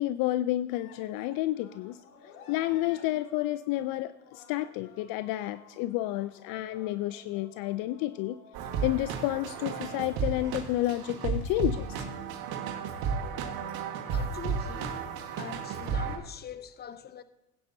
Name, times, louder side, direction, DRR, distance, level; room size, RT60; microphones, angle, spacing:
voice 1, 0.0-2.0 2.5-8.4 8.8-12.0, left 15 dB, 55° left, 0.5 m, -30 dB
sound 1, 0.7-10.6, left 6 dB, 85° left, 2.0 m, -54 dB
sound 2, 8.5-16.2, right 5 dB, 55° right, 1.8 m, -33 dB
voice 2, 14.1-15.0 15.4-17.2, left 9 dB, 25° left, 0.8 m, -43 dB
15.5 x 9.9 x 2.7 m
hypercardioid pair, 85°, 42 cm